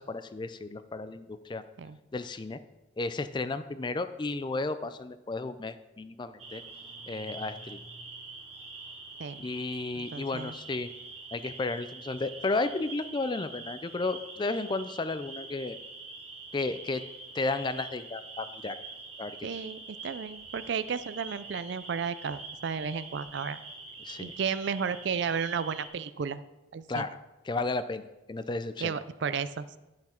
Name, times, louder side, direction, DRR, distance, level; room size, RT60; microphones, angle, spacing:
voice 1, 0.0-1.6 2.1-2.6 3.0-6.6 7.1-7.8 9.4-10.9 11.3-15.8 16.5-17.0 17.3-18.8 19.2-19.3 24.0-24.3 26.9-27.1 27.5-28.0 28.3-28.9, left 3 dB, 25° left, 12 dB, 0.4 m, -33 dB
sound 1, 6.4-25.9, right 3 dB, 30° right, 1.3 m, -45 dB
voice 2, 9.9-10.6 19.4-23.6 24.2-26.4 26.7-27.0 28.8-29.8, right 6 dB, 60° right, 14 dB, 0.4 m, -33 dB
10.5 x 5.9 x 4.4 m, 0.99 s
head